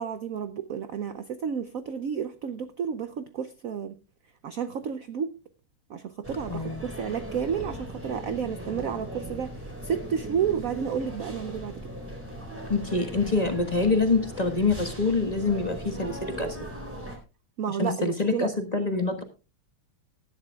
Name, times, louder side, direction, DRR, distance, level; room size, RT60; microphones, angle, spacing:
voice 1, 0.0-4.0 4.4-5.3 5.9-11.8 17.6-18.5, right 7 dB, 70° right, 11 dB, 0.7 m, -31 dB
sound 1, 6.2-17.2, right 1 dB, 5° right, 3.7 m, -38 dB
voice 2, 6.5-6.8 12.7-16.6 17.7-19.2, left 3 dB, 20° left, 4 dB, 1.3 m, -26 dB
18.0 x 11.5 x 2.3 m, 0.30 s
omnidirectional pair, 2.3 m